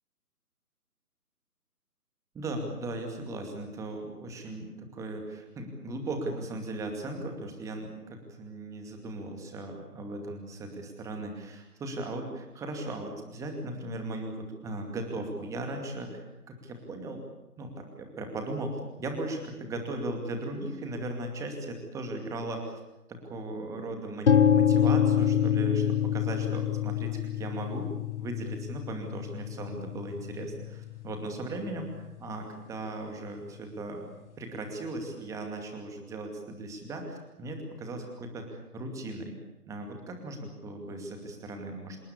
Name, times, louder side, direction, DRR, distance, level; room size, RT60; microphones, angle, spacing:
voice 1, 2.3-17.2 17.6-22.8 23.1-27.9 28.2-34.0 34.4-39.3 39.7-42.0, right 2 dB, 5° right, 4 dB, 2.4 m, -37 dB
sound 1, 24.3-32.2, left 9 dB, 45° left, 1.6 m, -27 dB
27.5 x 18.0 x 8.6 m, 0.93 s
figure-of-eight pair, 145°, 47 cm